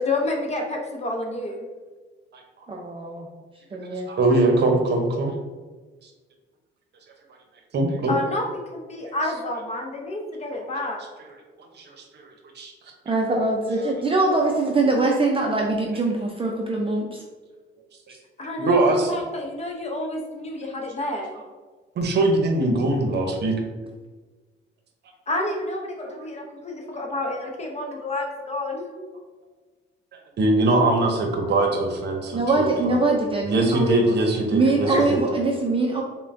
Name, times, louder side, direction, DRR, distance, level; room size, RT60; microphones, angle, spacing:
voice 1, 0.1-1.7 8.1-11.0 18.4-21.4 25.3-29.0 34.6-35.2, left 2 dB, 35° left, 1 dB, 0.7 m, -29 dB
voice 2, 2.7-3.3 3.7-4.1 13.1-17.2 32.3-34.2 34.5-36.0, right 2 dB, 25° right, 0 dB, 0.4 m, -23 dB
voice 3, 4.1-5.3 7.7-8.1 10.6-10.7 11.8-12.3 12.6-12.7 18.6-19.1 22.0-23.5 30.4-33.0 33.4-35.2, right 2 dB, 60° right, 3 dB, 0.7 m, -22 dB
5.4 x 2.2 x 2.6 m, 1.3 s
cardioid pair, 90°, 20 cm